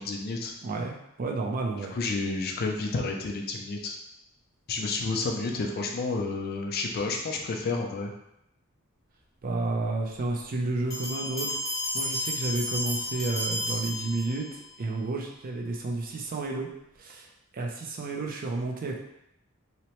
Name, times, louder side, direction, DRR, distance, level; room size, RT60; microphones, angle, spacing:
voice 1, 0.0-0.5 1.9-4.0 4.7-8.1, left 3 dB, 45° left, 2 dB, 0.4 m, -30 dB
voice 2, 0.6-1.9 9.4-11.6 11.9-16.7 17.0-19.0, right 2 dB, 45° right, 0 dB, 0.4 m, -31 dB
Bell, 10.9-14.7, left 1 dB, 20° left, 1.2 m, -32 dB
2.8 x 2.1 x 2.9 m, 0.81 s
head